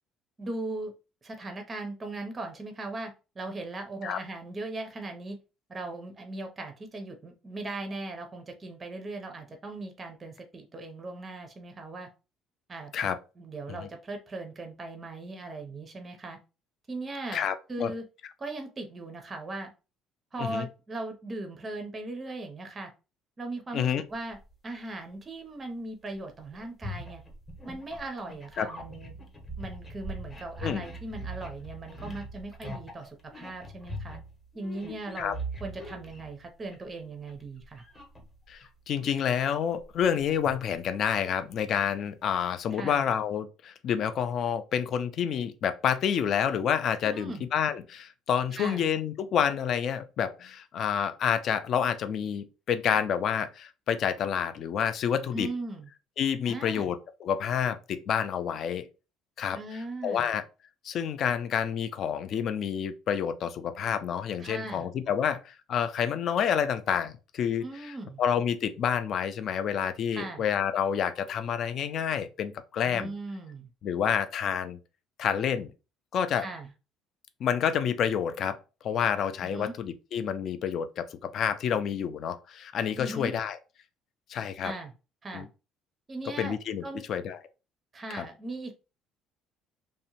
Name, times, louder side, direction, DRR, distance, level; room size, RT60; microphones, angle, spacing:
voice 1, 0.4-0.9 1.2-5.4 5.7-12.1 12.7-12.9 13.4-16.4 16.9-18.0 18.4-19.7 20.3-22.9 23.4-24.4 24.6-27.2 27.6-29.1 29.6-34.2 34.5-37.8 42.7-43.1 47.0-47.5 48.5-48.9 55.3-55.9 56.4-56.9 59.5-60.3 64.4-64.9 67.6-68.2 70.1-70.4 72.9-73.7 76.4-76.7 79.4-79.7 83.0-83.3 84.6-84.9 85.2-85.5 86.1-87.1 87.9-88.7, right 2 dB, 25° right, 0.5 m, -38 dB
voice 2, 17.3-17.9 20.4-20.7 23.7-24.0 28.6-28.7 30.6-30.8 35.2-35.4 38.5-55.5 56.2-58.9 59.4-60.4 60.8-73.1 73.8-74.8 75.2-75.7 76.1-76.5 77.4-83.6 84.3-84.7 85.3-85.5 86.4-87.4 88.1-88.3, left 8 dB, 50° left, 0.3 m, -29 dB
sound 1, 24.1-24.5 26.1-26.2 26.5-36.9 37.3-38.7 39.1-41.1, right 1 dB, 20° left, 0.7 m, -42 dB
2.7 x 2.0 x 2.8 m
cardioid pair, 130°, 0 cm